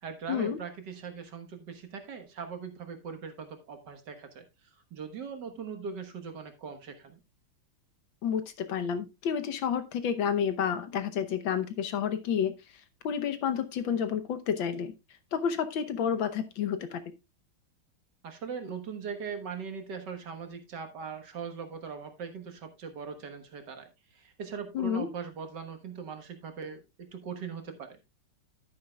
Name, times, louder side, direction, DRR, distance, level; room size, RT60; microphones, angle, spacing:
voice 1, 0.0-4.4 4.9-7.2 18.2-28.0, right 6 dB, 55° right, 6 dB, 1.8 m, -40 dB
voice 2, 8.2-12.5 13.0-14.9 15.3-17.0 24.7-25.1, left 8 dB, 70° left, 10 dB, 1.6 m, -30 dB
11.0 x 9.5 x 2.3 m, 0.24 s
omnidirectional pair, 2.3 m